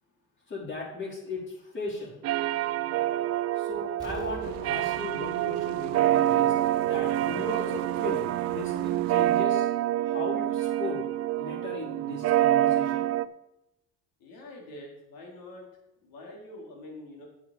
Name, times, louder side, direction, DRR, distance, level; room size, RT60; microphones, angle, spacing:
voice 1, 0.5-2.2 2.5-2.8 3.5-9.7 10.0-11.0 11.4-13.1, left 3 dB, 35° left, -3 dB, 4.7 m, -37 dB
sound 1, 2.2-13.3, right 14 dB, 45° right, 0.5 m, -27 dB
Explosion, 4.0-6.6 6.9-7.0, right 1 dB, 10° right, 2.6 m, -47 dB
sound 2, 4.4-9.5, right 14 dB, 80° right, 0.7 m, -37 dB
voice 2, 14.2-15.7 16.0-17.3, left 1 dB, 80° left, 0 dB, 3.8 m, -45 dB
9.6 x 8.4 x 5.1 m, 0.89 s
cardioid pair, 105°, 35 cm